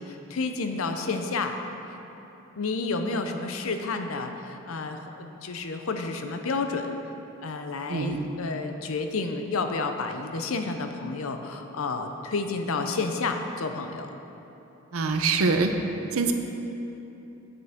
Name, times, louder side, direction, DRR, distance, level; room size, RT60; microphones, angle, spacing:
voice 1, 0.0-1.6 2.6-7.0 7.4-14.1, left 3 dB, 75° left, 6 dB, 0.6 m, -30 dB
voice 2, 7.9-8.3 14.9-15.7 16.1-16.3, right 4 dB, 85° right, 6 dB, 0.6 m, -24 dB
9.0 x 6.7 x 3.5 m, 3.0 s
head